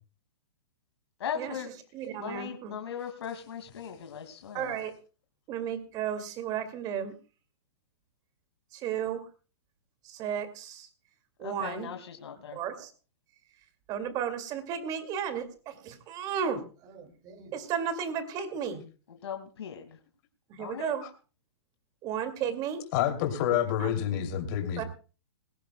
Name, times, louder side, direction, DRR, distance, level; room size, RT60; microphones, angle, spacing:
voice 1, 1.2-1.7 2.2-4.7 11.4-12.6 19.2-20.0 20.6-20.9, left 8 dB, 75° left, 4 dB, 2.2 m, -38 dB
voice 2, 1.9-2.7 4.5-4.9 5.5-7.1 8.7-9.3 10.0-10.9 11.4-11.9 12.5-12.9 13.9-18.8 20.5-21.1 22.0-22.8 23.8-23.9 24.8-24.9, right 8 dB, 30° right, 9 dB, 2.3 m, -34 dB
voice 3, 22.9-24.8, left 10 dB, 40° left, 6 dB, 2.8 m, -28 dB
20.5 x 16.5 x 2.2 m, 0.35 s
hypercardioid pair, 150°, 14 cm